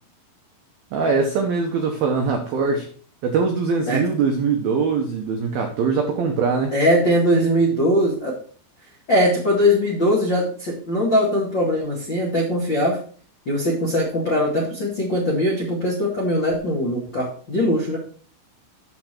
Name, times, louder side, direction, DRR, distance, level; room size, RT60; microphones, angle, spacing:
voice 1, 0.9-2.9 3.2-6.7, right 5 dB, 85° right, 3 dB, 2.1 m, -22 dB
voice 2, 6.7-8.3 9.1-13.0 13.4-18.0, equal, 65° left, -3 dB, 1.1 m, -21 dB
8.4 x 6.8 x 4.4 m, 0.43 s
omnidirectional pair, 5.8 m